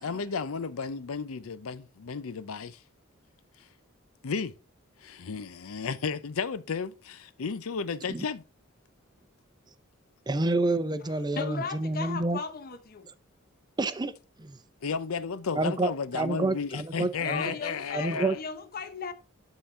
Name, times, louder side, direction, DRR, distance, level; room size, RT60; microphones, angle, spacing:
voice 1, 0.0-2.8 4.2-4.5 5.0-8.4 14.8-18.4, left 5 dB, 90° left, 0.6 m, -33 dB
voice 2, 10.3-12.4 13.8-14.1 14.4-14.6 15.6-15.9 16.1-17.5 17.9-18.4, right 2 dB, 20° right, 0.5 m, -28 dB
voice 3, 11.3-13.1 17.2-19.1, left 5 dB, 45° left, 0.8 m, -36 dB
11.5 x 3.9 x 3.7 m
head